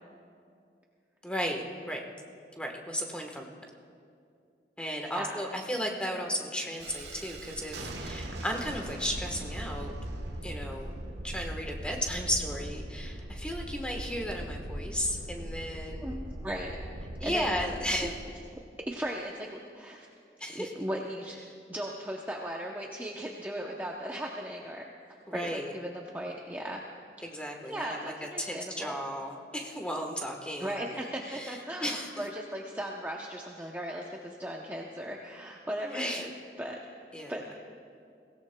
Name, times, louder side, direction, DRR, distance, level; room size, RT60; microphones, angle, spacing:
voice 1, 1.2-2.0 2.6-3.5 4.8-9.9 10.4-11.0 11.2-16.2 17.2-18.1 20.4-20.7 25.3-25.7 27.2-32.3 35.8-36.3 37.1-37.3, equal, 5° left, 1 dB, 1.2 m, -35 dB
Thunderstorm, 6.8-18.3, right 1 dB, 80° right, 1.2 m, -40 dB
voice 2, 16.0-16.7 17.2-17.6 17.9-18.1 18.9-20.1 20.5-21.4 21.7-24.8 25.3-26.8 27.2-27.3 27.7-29.0 30.6-36.3 36.6-36.8 37.3-37.4, right 1 dB, 10° right, -1 dB, 0.6 m, -37 dB
23.0 x 17.0 x 2.2 m, 2.4 s
head